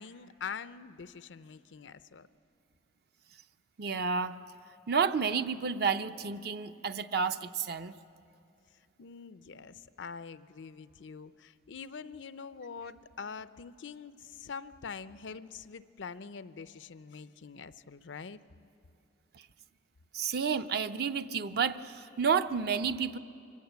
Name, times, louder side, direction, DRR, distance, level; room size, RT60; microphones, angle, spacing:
voice 1, 0.0-2.3 9.0-18.4, left 6 dB, 85° left, 14 dB, 0.6 m, -44 dB
voice 2, 3.8-4.4 4.9-7.9 20.1-23.2, right 6 dB, 55° right, 10 dB, 0.6 m, -30 dB
24.0 x 16.0 x 8.1 m, 2.5 s
head